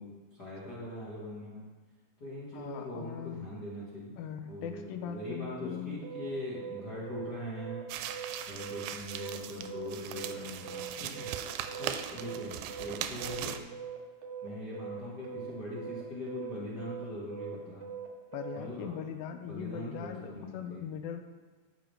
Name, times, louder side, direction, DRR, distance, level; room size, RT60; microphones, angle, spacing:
voice 1, 0.0-1.7 2.2-7.9 8.5-11.3 11.8-13.7 14.4-17.9 18.5-19.0 19.4-20.9, left 1 dB, 55° left, -8 dB, 1.1 m, -41 dB
voice 2, 2.5-3.5 4.2-6.1 18.3-21.2, left 9 dB, 80° left, 7 dB, 2.2 m, -40 dB
sound 1, 6.0-18.6, right 8 dB, 70° right, 1.8 m, -42 dB
sound 2, 7.9-13.6, right 10 dB, 85° right, 2.4 m, -39 dB
13.5 x 6.1 x 3.3 m, 1.4 s
omnidirectional pair, 4.4 m